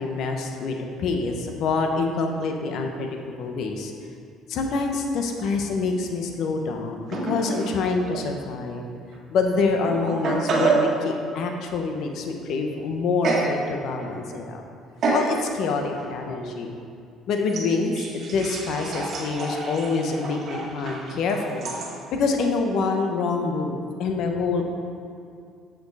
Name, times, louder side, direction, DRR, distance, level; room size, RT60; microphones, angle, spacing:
voice 1, 0.0-3.1 3.4-3.9 4.5-8.9 9.3-14.6 15.1-16.8 17.3-21.7 22.1-24.6, left 4 dB, 65° left, 3 dB, 0.9 m, -26 dB
sound 1, 7.1-7.8 8.1-8.2 9.1-9.2 9.8-11.0 13.2-13.6 14.0-14.4 15.0-15.4 15.9-16.1 17.5-21.9, right 3 dB, 50° right, 1.8 m, -28 dB
7.8 x 6.6 x 4.8 m, 2.3 s
cardioid pair, 100°, 0 cm